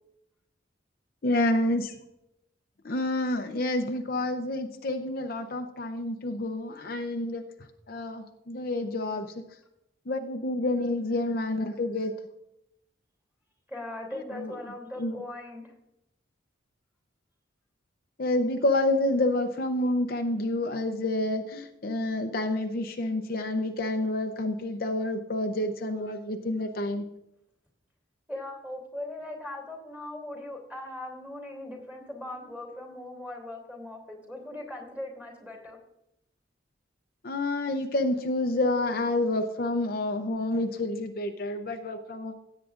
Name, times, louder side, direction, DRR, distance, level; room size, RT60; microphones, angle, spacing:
voice 1, 1.2-1.9 2.8-9.4 10.1-12.1 14.1-14.6 15.0-15.2 18.2-27.0 37.2-42.3, left 2 dB, 50° left, 5 dB, 0.7 m, -29 dB
voice 2, 13.7-15.7 28.3-35.8, left 1 dB, 5° right, 0 dB, 2.9 m, -39 dB
16.5 x 8.3 x 2.5 m, 0.84 s
head